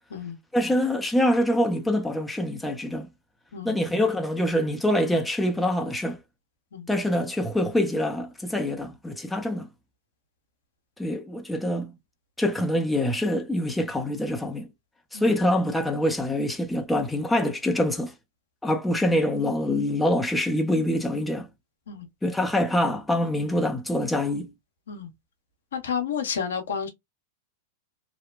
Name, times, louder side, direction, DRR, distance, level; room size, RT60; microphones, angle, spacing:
voice 1, 0.5-3.1 3.6-6.2 6.9-9.7 11.0-11.9 12.4-14.7 15.1-18.1 18.6-21.5 22.2-24.5, left 1 dB, 5° left, 0.5 m, -25 dB
voice 2, 25.7-26.9, left 7 dB, 80° left, 0.7 m, -31 dB
2.8 x 2.1 x 2.3 m
hypercardioid pair, 105°, 0 cm